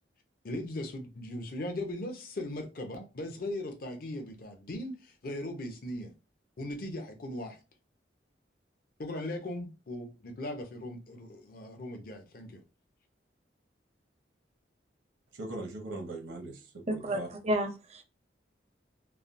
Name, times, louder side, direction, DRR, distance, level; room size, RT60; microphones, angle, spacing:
voice 1, 0.4-6.1 6.6-7.6 9.0-12.6, left 1 dB, 50° left, 0.6 m, -38 dB
voice 2, 15.3-17.3, right 2 dB, 75° right, 0.9 m, -40 dB
voice 3, 16.9-18.0, right 1 dB, 35° right, 0.5 m, -31 dB
3.2 x 2.1 x 2.6 m
head